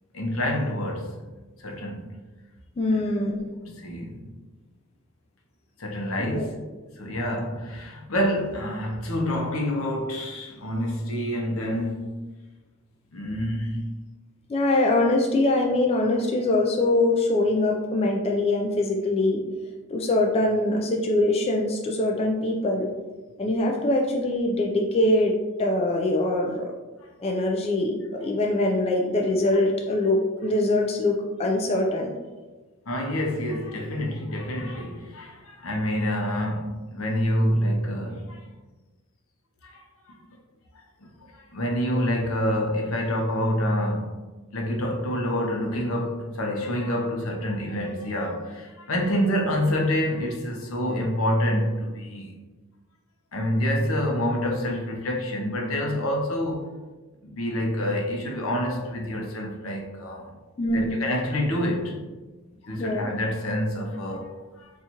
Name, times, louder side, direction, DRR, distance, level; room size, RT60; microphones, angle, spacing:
voice 1, 0.1-1.2 1.6-2.2 2.9-3.0 3.6-4.3 5.8-6.5 7.0-12.1 13.1-13.8 32.9-38.4 39.6-40.2 41.3-44.2 44.5-52.3 53.3-56.7 57.2-60.3 60.7-62.0 62.7-64.7, equal, 80° left, 1 dB, 0.7 m, -27 dB
voice 2, 2.8-3.4 6.2-6.5 14.5-19.4 19.9-22.9 23.4-26.7 27.2-32.1 60.6-61.0 62.8-63.1, left 2 dB, 30° left, 0 dB, 0.3 m, -23 dB
4.2 x 2.4 x 2.8 m, 1.2 s
head